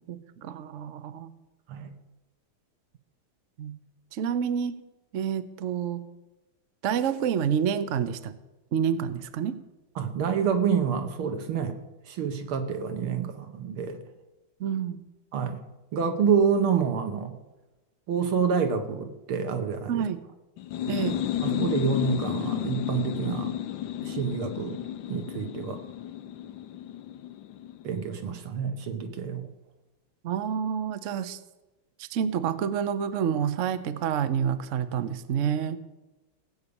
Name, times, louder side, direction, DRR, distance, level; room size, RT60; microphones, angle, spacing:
voice 1, 0.1-1.3 3.6-3.8 4.1-4.8 5.1-6.1 6.8-8.3 8.7-9.6 14.6-15.0 19.9-20.2 20.9-21.2 30.2-31.4 32.0-35.8, right 8 dB, 60° right, 12 dB, 0.8 m, -28 dB
voice 2, 10.0-11.8 12.0-14.0 15.3-15.6 15.9-17.4 18.1-20.1 21.4-23.5 24.0-24.8 25.1-25.8 27.8-29.5, right 6 dB, 90° right, 7 dB, 2.2 m, -27 dB
sound 1, 20.6-28.1, left 11 dB, 70° left, 1.4 m, -32 dB
17.0 x 8.4 x 7.1 m, 1.1 s
omnidirectional pair, 2.3 m